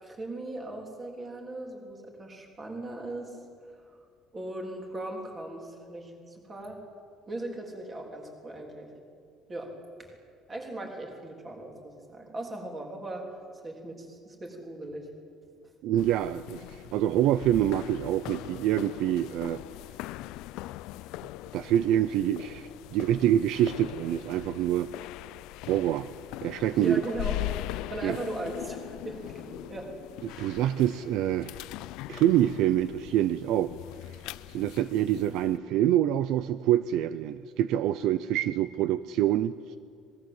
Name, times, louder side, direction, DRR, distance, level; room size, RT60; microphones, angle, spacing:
voice 1, 0.0-3.4 3.9-4.0 4.3-6.8 7.3-8.9 9.5-9.7 10.5-13.3 13.6-15.1 26.7-27.4 27.7-29.9 30.3-30.6, right 1 dB, 15° right, 2 dB, 3.5 m, -38 dB
voice 2, 15.8-19.6 21.5-24.9 25.7-26.1 26.4-27.0 28.0-28.2 30.2-31.5 32.1-33.7 34.5-39.5, right 12 dB, 55° right, 14 dB, 0.5 m, -26 dB
sound 1, 16.0-35.6, left 16 dB, 70° left, 0.5 m, -41 dB
26.0 x 20.0 x 7.9 m, 2.2 s
cardioid pair, 180°, 0 cm